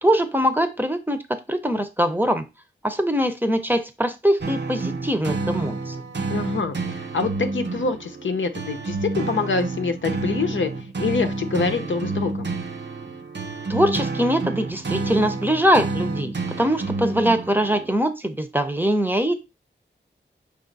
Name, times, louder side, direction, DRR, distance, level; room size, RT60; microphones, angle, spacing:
voice 1, 0.0-2.4 2.8-5.9 13.7-19.4, equal, 10° right, 8 dB, 0.7 m, -22 dB
sound 1, 4.4-17.9, right 3 dB, 65° right, 0.7 m, -29 dB
voice 2, 6.3-12.5, left 4 dB, 80° left, 6 dB, 0.7 m, -26 dB
5.1 x 2.5 x 4.0 m, 0.25 s
wide cardioid pair, 50°, 20 cm